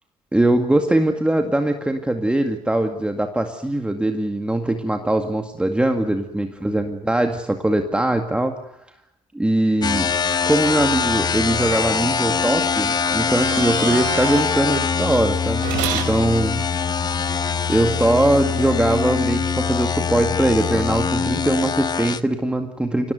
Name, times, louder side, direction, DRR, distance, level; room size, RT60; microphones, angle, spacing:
voice 1, 0.3-8.5 9.3-10.1 10.4-15.6 16.1-16.6 17.7-23.1, right 1 dB, 10° right, 5 dB, 2.1 m, -21 dB
sound 1, 9.8-22.2, left 6 dB, 30° left, 1.0 m, -23 dB
sound 2, 13.4-14.5 15.6-16.2 18.6-18.7, right 9 dB, 80° right, 4.9 m, -28 dB
24.5 x 18.0 x 9.3 m, 0.78 s
supercardioid pair, 80°, 14 cm